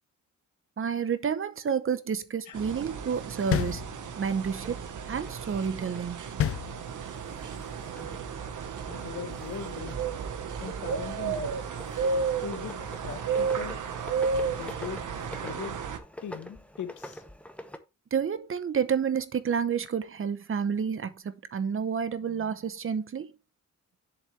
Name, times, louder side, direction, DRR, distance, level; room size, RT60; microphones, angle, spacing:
voice 1, 0.8-3.8 4.2-6.3 18.1-23.3, right 7 dB, 40° right, 0.9 m, -30 dB
sound 1, 2.5-16.0, right 5 dB, 75° right, 1.2 m, -33 dB
sound 2, 3.5-4.4 6.4-7.3, left 10 dB, 50° left, 0.4 m, -30 dB
sound 3, 4.5-17.8, left 1 dB, 5° left, 0.9 m, -47 dB
voice 2, 8.9-10.0 10.6-11.7 12.4-12.8 13.0-13.8 14.4-15.8 16.2-17.2, left 8 dB, 70° left, 1.2 m, -40 dB
7.6 x 7.2 x 3.3 m
wide cardioid pair, 130°, 31 cm